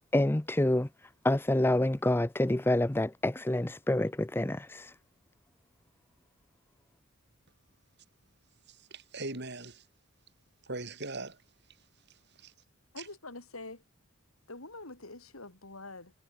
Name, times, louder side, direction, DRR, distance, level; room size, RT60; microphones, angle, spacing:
voice 1, 0.1-0.9 1.2-4.9, left 1 dB, 10° left, 0.6 m, -27 dB
voice 2, 8.7-9.8 10.6-11.4 12.1-12.5 13.0-13.1, right 2 dB, 55° right, 5.7 m, -41 dB
voice 3, 12.9-13.8 14.5-16.1, left 2 dB, 85° left, 6.2 m, -45 dB
head